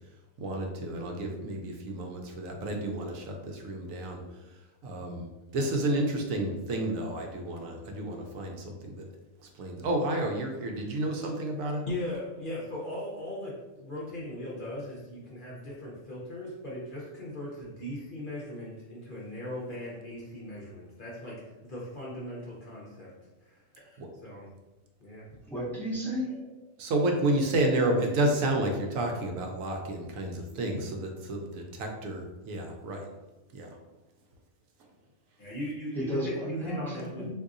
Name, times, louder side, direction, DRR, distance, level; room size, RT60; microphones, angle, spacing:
voice 1, 0.4-4.2 4.8-9.1 9.5-11.8 24.0-24.1 26.8-33.1 33.5-33.7, right 1 dB, 75° right, 2 dB, 0.9 m, -30 dB
voice 2, 11.8-23.1 23.4-24.5 25.0-25.3 35.4-37.3, left 1 dB, 50° left, -5 dB, 0.7 m, -38 dB
voice 3, 25.5-26.6 35.9-37.3, equal, ahead, -7 dB, 0.4 m, -34 dB
3.7 x 2.6 x 2.5 m, 1.1 s
omnidirectional pair, 1.5 m